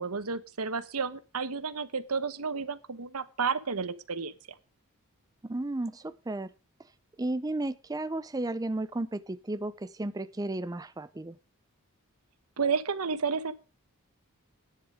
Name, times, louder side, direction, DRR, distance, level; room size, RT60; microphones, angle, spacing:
voice 1, 0.0-4.3 12.6-13.5, right 5 dB, 85° right, 1.0 m, -31 dB
voice 2, 5.4-6.5 7.2-11.4, right 2 dB, 15° right, 0.5 m, -33 dB
10.5 x 9.9 x 4.9 m
head